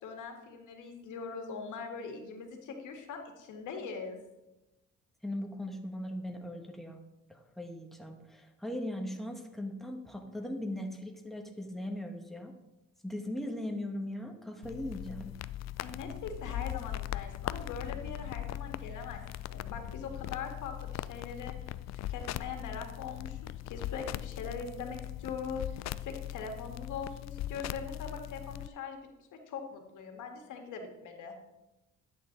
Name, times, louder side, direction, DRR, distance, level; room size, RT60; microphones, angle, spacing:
voice 1, 0.0-4.2 15.8-19.2 19.5-21.5 22.1-29.0 29.3-31.3, left 5 dB, 80° left, 3 dB, 2.0 m, -41 dB
voice 2, 5.2-7.0 7.3-12.5 13.0-15.3, left 1 dB, ahead, 2 dB, 1.6 m, -39 dB
sound 1, 14.6-28.7, left 13 dB, 60° left, 0.4 m, -40 dB
11.0 x 8.5 x 4.0 m, 0.98 s
cardioid pair, 90°, 30 cm